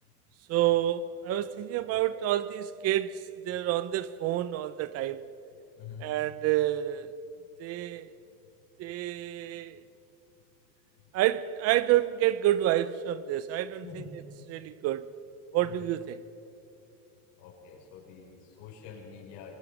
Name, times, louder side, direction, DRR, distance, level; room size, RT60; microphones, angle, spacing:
voice 1, 0.5-5.2 6.0-7.1 7.6-8.1 8.8-9.8 11.1-14.0 14.5-15.1 15.5-16.2, right 13 dB, 45° right, 0.6 m, -28 dB
voice 2, 13.8-14.2 15.6-15.8 17.4-19.5, left 7 dB, 70° left, 5.9 m, -46 dB
24.5 x 20.5 x 6.1 m
cardioid pair, 155°, 33 cm